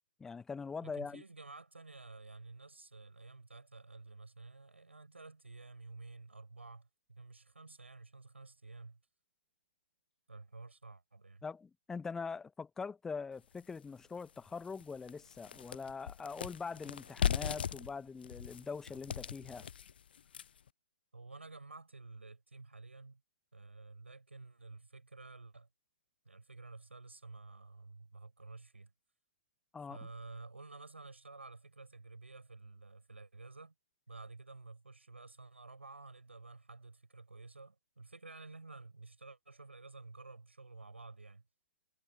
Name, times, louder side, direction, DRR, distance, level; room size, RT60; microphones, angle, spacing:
voice 1, 0.2-1.2 11.4-19.7 29.7-30.0, left 5 dB, 5° left, 1.4 m, -43 dB
voice 2, 0.8-9.0 10.3-11.4 21.1-23.2 23.5-25.7 26.2-28.9 29.9-33.7 34.1-41.4, right 3 dB, 75° right, 6.1 m, -52 dB
sound 1, 13.6-13.7 14.2-14.3 14.6-20.7, left 8 dB, 50° left, 0.9 m, -38 dB
figure-of-eight pair, 125°, 7 cm